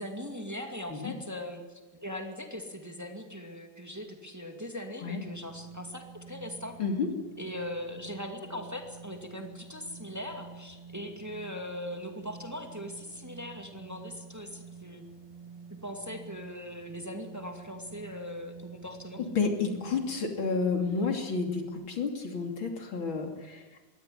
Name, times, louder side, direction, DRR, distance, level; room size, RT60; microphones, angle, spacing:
voice 1, 0.0-1.6 1.9-6.8 7.4-15.1 15.8-19.2, left 1 dB, 10° right, 4 dB, 2.2 m, -40 dB
sound 1, 5.2-21.7, right 5 dB, 65° right, 3.1 m, -49 dB
voice 2, 19.4-23.6, left 4 dB, 85° left, 4 dB, 3.7 m, -30 dB
22.0 x 17.0 x 10.0 m, 1.2 s
omnidirectional pair, 2.1 m